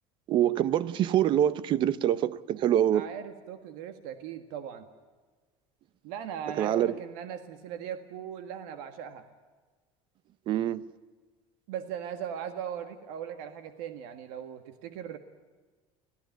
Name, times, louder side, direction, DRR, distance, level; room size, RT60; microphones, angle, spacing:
voice 1, 0.3-3.1 6.6-6.9 10.5-10.8, right 11 dB, 40° right, 0.8 m, -25 dB
voice 2, 2.9-4.9 6.0-9.2 11.7-15.2, right 9 dB, 85° right, 1.7 m, -39 dB
25.5 x 17.5 x 9.2 m
cardioid pair, 170°, 13 cm